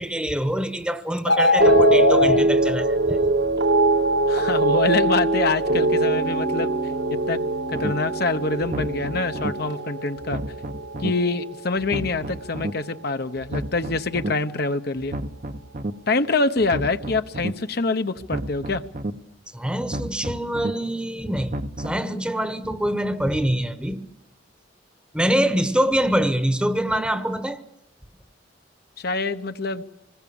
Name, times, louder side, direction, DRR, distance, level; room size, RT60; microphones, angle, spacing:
voice 1, 0.0-3.2 19.5-24.0 25.1-27.6, equal, 5° right, 1.0 m, -25 dB
sound 1, 1.2-2.4, left 3 dB, 80° left, 4.7 m, -18 dB
sound 2, 1.6-12.0 12.3-12.8, right 2 dB, 60° right, 1.5 m, -23 dB
voice 2, 4.3-6.7 7.3-7.4 7.7-10.4 11.0-15.2 16.1-18.8 29.0-29.8, left 3 dB, 55° left, 0.9 m, -25 dB
sound 3, 7.7-7.9 8.6-9.5 10.2-11.1 11.8-12.7 13.4-14.3 15.0-15.9 16.6-17.5 18.2-19.1 19.8-20.7 21.4-22.0, right 1 dB, 45° right, 0.8 m, -32 dB
26.0 x 20.5 x 7.0 m
head